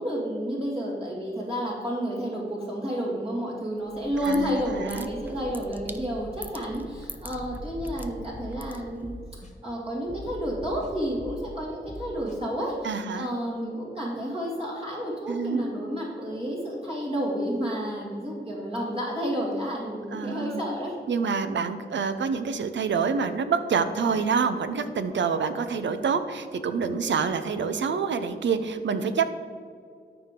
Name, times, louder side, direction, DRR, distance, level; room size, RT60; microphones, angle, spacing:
voice 1, 0.0-20.9, equal, 30° right, -6 dB, 2.2 m, -31 dB
sound 1, 3.8-9.2, right 2 dB, 10° right, 0.6 m, -42 dB
voice 2, 4.3-5.1 12.8-13.3 15.3-15.7 20.1-20.6 21.1-29.3, right 5 dB, 80° right, 10 dB, 0.7 m, -27 dB
sound 2, 7.4-8.7 9.0-9.5 10.1-11.6 11.9-12.4, left 1 dB, 40° left, 1.3 m, -41 dB
13.0 x 4.8 x 3.7 m, 2.2 s
cardioid pair, 65°, 19 cm